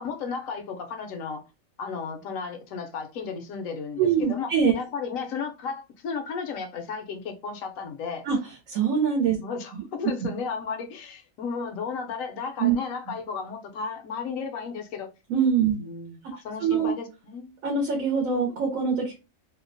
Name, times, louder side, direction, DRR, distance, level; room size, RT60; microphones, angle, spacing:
voice 1, 0.0-1.4 1.8-8.3 9.3-15.1 15.6-17.6, left 5 dB, 80° left, 1.0 m, -34 dB
voice 2, 4.0-4.8 8.2-8.4 8.7-9.4 9.7-9.8 12.6-12.7 15.3-15.8 16.6-16.9 17.6-19.2, right 6 dB, 80° right, 1.0 m, -23 dB
2.7 x 2.0 x 2.5 m
omnidirectional pair, 1.4 m